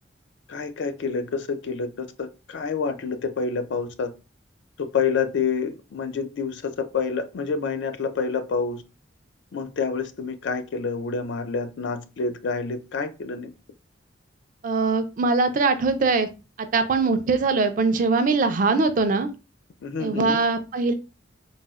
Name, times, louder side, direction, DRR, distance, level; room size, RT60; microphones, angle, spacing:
voice 1, 0.5-4.1 4.8-8.8 9.5-13.5 19.8-20.4, left 5 dB, 65° left, 0.3 m, -28 dB
voice 2, 14.6-16.3 16.7-19.3 20.0-20.9, right 4 dB, 45° right, 0.3 m, -22 dB
4.0 x 2.0 x 2.3 m
head